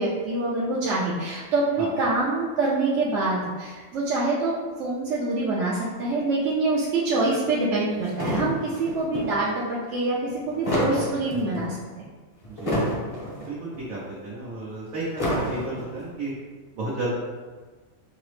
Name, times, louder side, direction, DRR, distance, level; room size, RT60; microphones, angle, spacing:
voice 1, 0.0-12.1, right 2 dB, 65° right, -6 dB, 0.9 m, -25 dB
sound 1, 8.0-9.3 10.3-11.7 12.4-13.5 13.7-13.8 15.0-16.0, equal, 30° left, 0.7 m, -28 dB
voice 2, 13.4-16.3 16.8-17.1, right 2 dB, 85° right, -7 dB, 1.2 m, -32 dB
5.6 x 2.0 x 3.1 m, 1.4 s
omnidirectional pair, 1.4 m